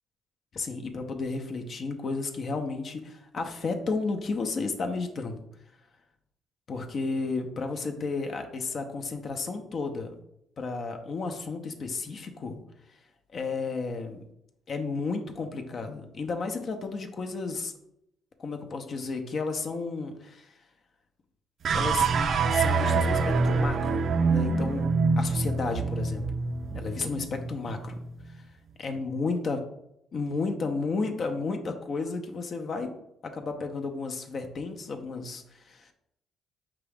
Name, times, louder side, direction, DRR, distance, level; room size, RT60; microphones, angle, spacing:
voice 1, 0.5-5.4 6.7-10.1 10.6-12.6 13.3-14.2 14.7-17.7 18.4-20.5 21.7-22.1 22.5-26.2 26.7-28.0 28.3-28.4 28.8-29.6 30.1-32.9 33.2-35.9, left 4 dB, 50° left, 4 dB, 0.6 m, -32 dB
sound 1, 21.6-28.0, right 4 dB, 60° right, 0.4 m, -26 dB
4.7 x 2.9 x 3.4 m, 0.79 s
cardioid pair, 85°, 0 cm